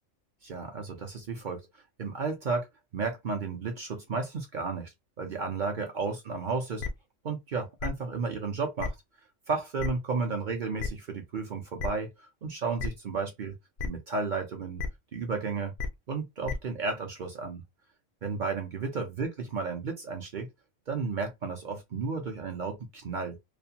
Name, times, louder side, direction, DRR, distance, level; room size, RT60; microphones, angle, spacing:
voice 1, 0.4-1.7 2.0-2.7 2.9-6.9 7.2-8.9 9.5-13.5 13.8-14.8 15.1-15.7 16.1-17.6 18.2-20.5 20.9-23.4, right 4 dB, 55° right, 0.6 m, -33 dB
sound 1, 6.8-6.9 7.8-7.9 8.8-8.9 9.8-9.9 10.8-10.9 11.8-11.9 12.8-12.9 13.8-13.9 14.8-14.9 15.8-15.9 16.5-16.6, left 5 dB, 75° left, 0.4 m, -32 dB
2.4 x 2.1 x 2.6 m
omnidirectional pair, 1.3 m